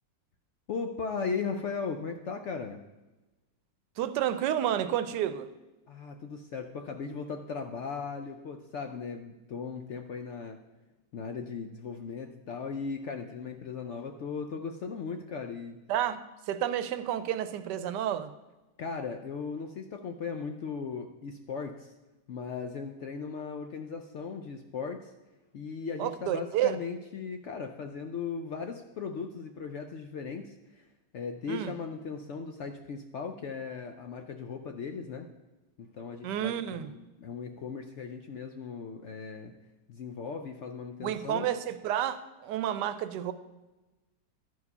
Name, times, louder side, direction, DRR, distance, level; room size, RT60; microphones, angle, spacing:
voice 1, 0.7-2.8 5.9-10.6 11.1-15.8 18.8-21.9 22.3-25.1 25.5-30.9 31.1-35.3 35.8-39.5 39.9-41.5, left 5 dB, 75° left, 5 dB, 0.6 m, -37 dB
voice 2, 4.0-5.5 15.9-16.2 16.5-18.3 26.0-26.8 31.5-31.7 36.2-36.9 41.0-43.3, right 11 dB, 85° right, 11 dB, 1.2 m, -30 dB
12.0 x 4.7 x 5.4 m, 1.1 s
omnidirectional pair, 1.8 m